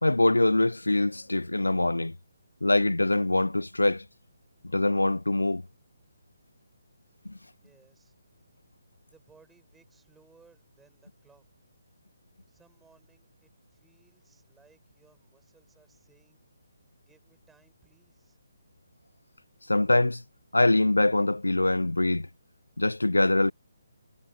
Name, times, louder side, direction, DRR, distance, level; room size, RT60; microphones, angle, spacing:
voice 1, 0.0-2.1 2.6-4.0 4.7-5.6 19.7-20.2 20.5-22.3 22.8-23.5, left 2 dB, 75° left, 0.4 m, -23 dB
voice 2, 7.6-8.1 9.1-11.4 12.5-16.4 17.0-18.4, right 4 dB, 5° right, 5.5 m, -63 dB
figure-of-eight pair, 140°, 0 cm